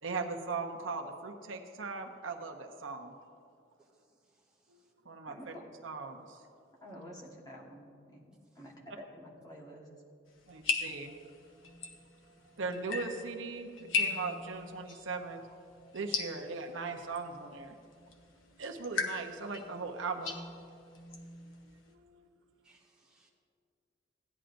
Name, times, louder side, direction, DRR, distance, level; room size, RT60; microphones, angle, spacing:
voice 1, 0.0-3.1 4.7-5.5 5.8-6.4 10.5-11.2 12.4-15.4 15.9-17.8 18.6-20.4 21.9-22.3, right 4 dB, 80° right, 3 dB, 0.8 m, -39 dB
voice 2, 3.8-4.9 8.3-8.6 22.6-23.3, right 2 dB, 5° right, -5 dB, 1.5 m, -69 dB
voice 3, 5.3-5.7 6.8-8.3 8.5-9.9, equal, 20° left, -3 dB, 1.4 m, -49 dB
sound 1, 10.3-21.9, left 4 dB, 85° left, 1.0 m, -39 dB
16.0 x 10.0 x 2.6 m, 2.4 s
head